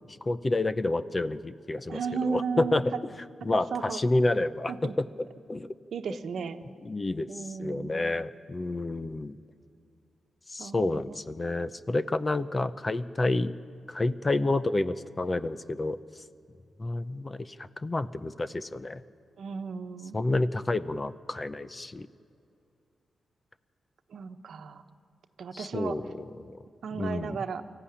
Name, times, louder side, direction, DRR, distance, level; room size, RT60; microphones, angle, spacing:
voice 1, 0.3-3.1 3.4-5.7 6.8-9.3 10.5-13.5 13.9-16.0 16.8-17.6 17.8-19.0 20.1-22.1 25.5-26.1 26.4-26.5 26.9-27.4, left 2 dB, 25° left, 14 dB, 0.6 m, -29 dB
voice 2, 1.9-2.8 3.5-4.0 4.7-4.9 5.9-6.6 7.3-8.2 10.6-11.2 19.4-20.2 24.1-24.8 25.4-26.0 26.8-27.6, right 6 dB, 70° right, 8 dB, 1.1 m, -35 dB
24.0 x 14.5 x 10.0 m, 2.5 s
wide cardioid pair, 115°, 0 cm